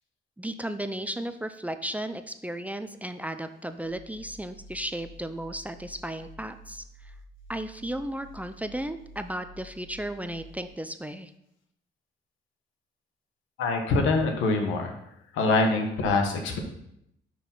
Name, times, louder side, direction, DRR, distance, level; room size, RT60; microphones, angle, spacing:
voice 1, 0.4-7.1 7.5-11.3, right 1 dB, 5° right, 9 dB, 0.4 m, -35 dB
sound 1, 3.8-10.7, equal, 30° left, 2.2 m, -50 dB
voice 2, 13.6-15.0 15.3-16.6, left 3 dB, 90° left, 4 dB, 1.2 m, -24 dB
5.7 x 5.0 x 5.3 m, 0.78 s
cardioid pair, 90°, 20 cm